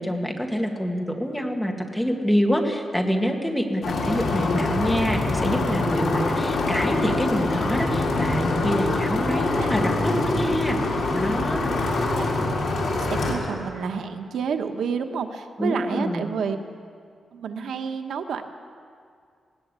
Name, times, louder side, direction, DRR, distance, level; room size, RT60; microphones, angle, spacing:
voice 1, 0.0-10.8 11.1-11.7 15.6-16.3, equal, 5° left, 2 dB, 2.0 m, -26 dB
sound 1, 3.8-13.3, left 2 dB, 60° left, 4.3 m, -24 dB
voice 2, 9.2-9.7 12.2-12.3 13.1-16.6 17.3-18.4, right 6 dB, 90° right, 6 dB, 1.3 m, -29 dB
20.0 x 17.5 x 8.3 m, 2.2 s
wide cardioid pair, 165°, 0 cm